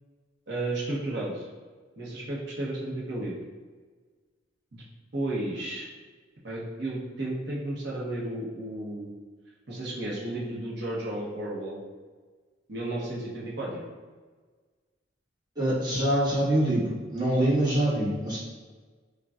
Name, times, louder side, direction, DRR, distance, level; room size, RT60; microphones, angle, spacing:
voice 1, 0.5-1.5 2.0-3.4 4.7-4.8 5.1-5.9 6.4-9.1 9.7-11.8 12.7-13.8, right 1 dB, 65° right, -4 dB, 0.9 m, -33 dB
voice 2, 15.5-18.4, right 1 dB, 20° right, -12 dB, 1.3 m, -25 dB
5.0 x 2.2 x 2.4 m, 1.4 s
head